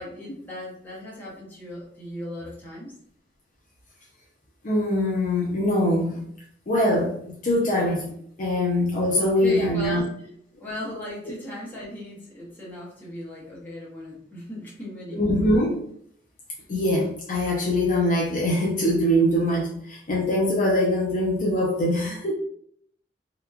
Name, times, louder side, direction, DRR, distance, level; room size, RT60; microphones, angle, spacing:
voice 1, 0.0-2.9 9.2-10.3 10.6-15.5, equal, 10° left, -6 dB, 0.8 m, -37 dB
voice 2, 4.6-6.2 6.7-10.0 15.1-15.8 16.7-22.3, left 1 dB, 45° left, -3 dB, 0.4 m, -23 dB
2.8 x 2.1 x 2.3 m, 0.66 s
head